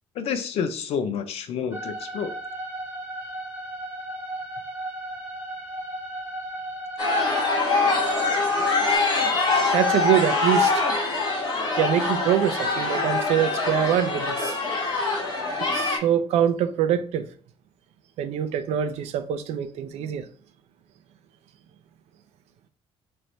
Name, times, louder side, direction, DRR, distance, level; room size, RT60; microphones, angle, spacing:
voice 1, 0.1-2.3 8.6-8.7, left 6 dB, 65° left, 0.6 m, -29 dB
sound 1, 1.7-9.0, right 1 dB, 15° right, 1.0 m, -35 dB
sound 2, 7.0-16.0, left 3 dB, 40° left, 1.2 m, -24 dB
voice 2, 9.7-10.8 11.8-14.5 15.7-17.2 18.2-20.2, right 10 dB, 75° right, 0.5 m, -24 dB
3.2 x 2.6 x 4.3 m
cardioid pair, 175°, 11 cm